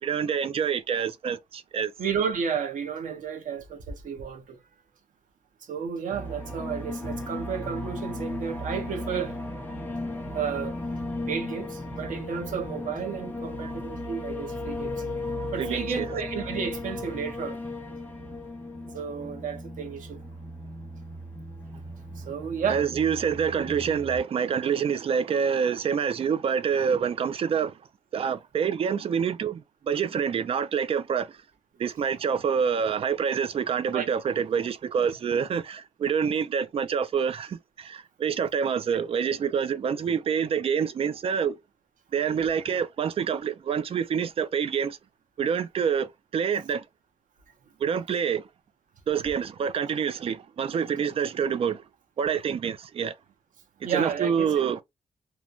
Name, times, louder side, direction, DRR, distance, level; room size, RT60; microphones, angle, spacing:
voice 1, 0.0-1.9 15.6-16.1 22.7-27.8 28.1-31.4 31.8-41.6 42.1-45.0 45.4-46.9 47.8-48.5 49.1-51.8 52.2-53.2 53.8-54.8, right 7 dB, 45° right, 0.4 m, -27 dB
voice 2, 2.0-4.6 5.6-9.4 10.3-10.8 11.3-15.0 15.5-17.6 18.8-20.2 22.2-22.8 33.9-34.1 53.8-54.5, right 7 dB, 85° right, 0.8 m, -32 dB
sound 1, 6.1-24.2, left 1 dB, 15° left, 0.7 m, -36 dB
3.0 x 2.2 x 2.3 m
wide cardioid pair, 155°, 13 cm